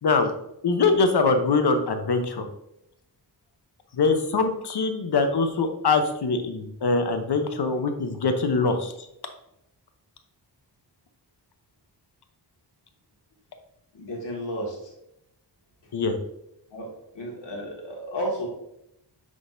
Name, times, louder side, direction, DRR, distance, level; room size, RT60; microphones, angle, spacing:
voice 1, 0.6-2.4 3.9-8.9 15.9-16.2, left 4 dB, 65° left, 6 dB, 0.9 m, -23 dB
voice 2, 13.9-14.9 16.7-16.9 17.1-18.5, equal, 85° left, -3 dB, 2.1 m, -32 dB
9.3 x 3.9 x 2.6 m, 0.81 s
wide cardioid pair, 85°, 42 cm